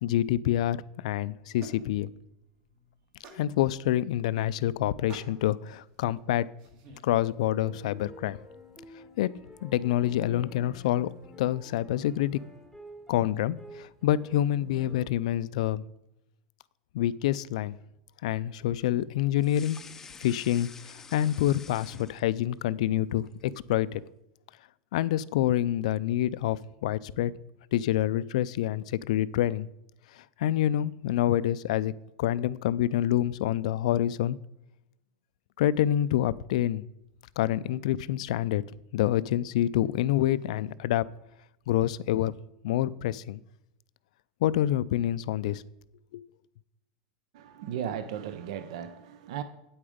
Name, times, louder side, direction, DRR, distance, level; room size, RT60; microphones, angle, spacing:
voice 1, 0.0-2.1 3.3-6.5 7.0-8.4 9.2-9.3 9.6-11.1 11.4-12.4 13.1-15.8 16.9-17.7 18.2-19.9 20.2-24.0 24.9-27.3 27.7-29.7 30.4-31.9 32.2-34.4 35.6-36.8 37.4-38.6 38.9-41.1 41.7-42.3 42.6-43.4 44.4-45.6 46.1-46.2, left 12 dB, 75° left, 18 dB, 0.4 m, -27 dB
sound 1, 1.0-7.1, right 3 dB, 45° right, 1.7 m, -52 dB
sound 2, 7.2-15.1, equal, 5° right, 1.0 m, -50 dB
sound 3, 19.4-22.6 23.0-23.7, left 5 dB, 10° left, 0.5 m, -48 dB
voice 2, 47.3-49.4, right 9 dB, 70° right, 11 dB, 0.6 m, -36 dB
8.8 x 8.7 x 5.0 m, 0.86 s
supercardioid pair, 170°, 4 cm